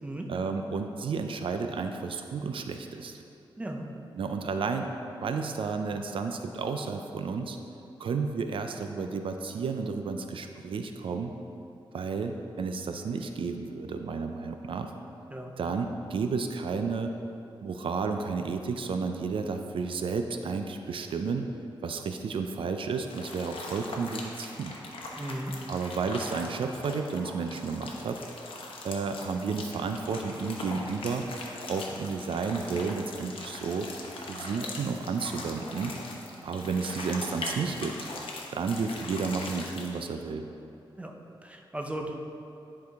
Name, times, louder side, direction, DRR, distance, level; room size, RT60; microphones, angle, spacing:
voice 1, 0.3-3.2 4.1-4.9 5.2-7.6 8.0-11.3 11.9-14.9 15.6-17.1 17.6-21.5 21.8-24.7 25.7-28.2 28.8-31.3 31.7-33.9 34.2-35.9 36.4-38.1 38.5-40.5, right 5 dB, 70° right, 6 dB, 0.4 m, -32 dB
voice 2, 3.6-3.9 15.3-15.5 25.2-25.5 41.0-41.1 41.4-42.1, right 1 dB, 15° right, 2 dB, 0.6 m, -36 dB
sound 1, 23.1-40.0, left 2 dB, 75° left, 0.9 m, -41 dB
10.5 x 4.8 x 3.5 m, 2.8 s
wide cardioid pair, 135°, 9 cm